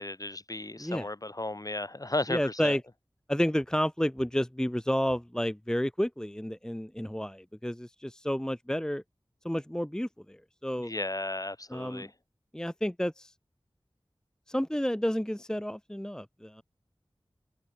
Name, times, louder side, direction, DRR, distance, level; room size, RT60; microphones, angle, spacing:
voice 1, 0.0-2.8 10.8-12.1, left 2 dB, 40° left, 5.5 m, -34 dB
voice 2, 2.3-2.8 3.3-9.0 9.4-10.9 11.7-12.1 12.5-13.3 14.5-16.6, equal, 5° left, 0.9 m, -31 dB
open air
wide cardioid pair, 60°, 9 cm